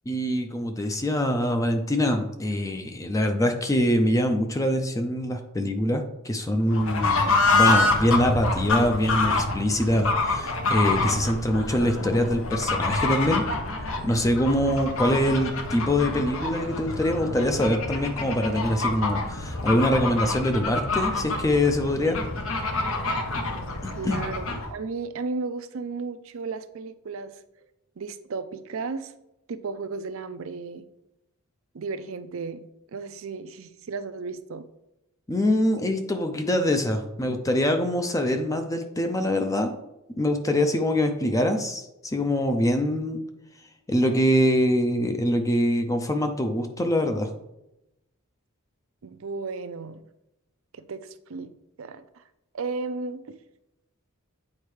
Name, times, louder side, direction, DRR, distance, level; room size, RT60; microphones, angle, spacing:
voice 1, 0.1-13.4 14.0-22.2 24.0-24.3 35.3-39.7 40.2-43.2 43.9-47.3, left 1 dB, 15° left, 5 dB, 0.5 m, -24 dB
Fowl / Bird, 6.7-24.7, left 3 dB, 70° left, 0.9 m, -27 dB
voice 2, 23.9-27.3 28.0-29.1 29.5-30.8 31.7-32.6 32.9-34.6 49.0-50.0 50.7-51.5 51.8-52.2 52.5-53.4, right 4 dB, 65° right, 11 dB, 0.5 m, -34 dB
8.5 x 4.4 x 3.2 m, 0.89 s
head